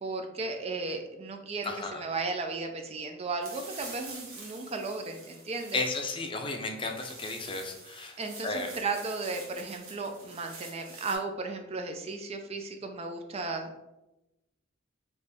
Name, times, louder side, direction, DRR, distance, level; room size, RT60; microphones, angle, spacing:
voice 1, 0.0-5.8 8.2-13.9, right 3 dB, 30° right, 5 dB, 0.4 m, -35 dB
voice 2, 1.6-2.0 5.7-8.7, left 3 dB, 25° left, 3 dB, 0.5 m, -34 dB
sound 1, 3.4-11.2, right 3 dB, 80° right, 1.3 m, -47 dB
4.2 x 3.0 x 3.4 m, 0.95 s
head